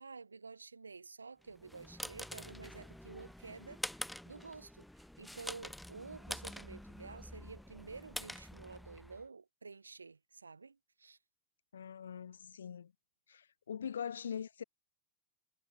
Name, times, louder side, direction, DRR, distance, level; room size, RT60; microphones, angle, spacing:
voice 1, 0.0-4.8 5.2-11.2, right 4 dB, 75° right, 1.8 m, -51 dB
sound 1, 1.5-9.2, left 1 dB, ahead, 0.6 m, -46 dB
voice 2, 11.7-12.9 13.3-14.6, left 8 dB, 70° left, 0.4 m, -42 dB
figure-of-eight pair, 90°, 0 cm